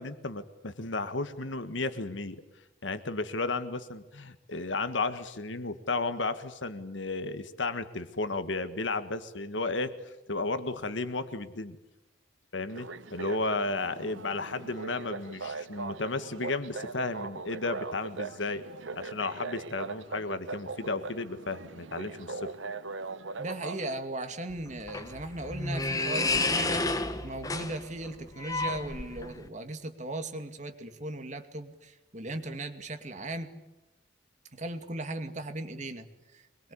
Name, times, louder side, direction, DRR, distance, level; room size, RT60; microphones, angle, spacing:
voice 1, 0.0-2.4 2.8-9.9 10.3-11.8 12.5-18.6 18.9-22.5, left 3 dB, 80° left, 11 dB, 1.7 m, -33 dB
sound 1, 12.7-23.9, right 4 dB, 85° right, 1.1 m, -40 dB
voice 2, 23.4-33.6 34.5-36.7, right 2 dB, 40° right, 7 dB, 2.4 m, -38 dB
sound 2, 24.5-29.5, left 3 dB, 20° left, 1.5 m, -31 dB
25.0 x 22.0 x 8.6 m, 1.0 s
head